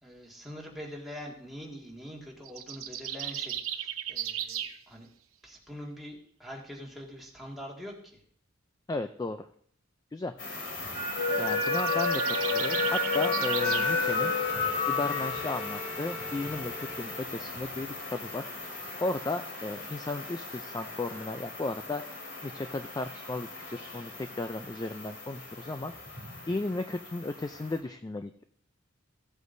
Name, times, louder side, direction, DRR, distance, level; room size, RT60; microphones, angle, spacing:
voice 1, 0.0-5.1 5.4-7.9, equal, ahead, -3 dB, 2.0 m, -44 dB
sound 1, 2.4-4.8 11.4-13.9, right 10 dB, 80° right, 0.8 m, -36 dB
voice 2, 8.9-9.5 10.1-10.3 11.4-14.3 14.9-18.5 19.0-22.0 22.4-25.9 26.5-28.4, left 2 dB, 20° left, 8 dB, 0.3 m, -35 dB
sound 2, 10.4-27.8, left 3 dB, 60° left, 3.1 m, -33 dB
Bowed string instrument, 12.1-17.4, left 2 dB, 80° left, 2.5 m, -42 dB
15.5 x 8.1 x 2.7 m, 0.62 s
head